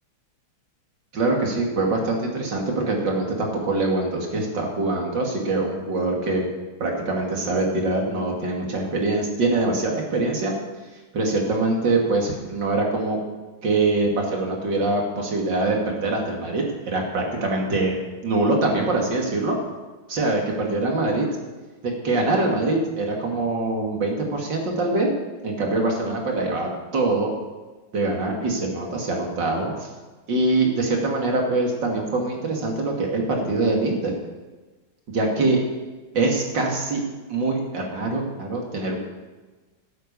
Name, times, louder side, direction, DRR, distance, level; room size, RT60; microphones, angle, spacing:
voice 1, 1.1-6.5 6.8-10.5 11.1-13.2 13.6-18.0 18.2-19.6 20.1-21.3 21.8-25.1 25.4-27.3 27.9-29.9 30.3-34.1 35.1-35.6 36.1-37.0 37.3-39.0, right 2 dB, 60° right, 0 dB, 3.1 m, -23 dB
15.0 x 8.6 x 6.9 m, 1.3 s
omnidirectional pair, 2.2 m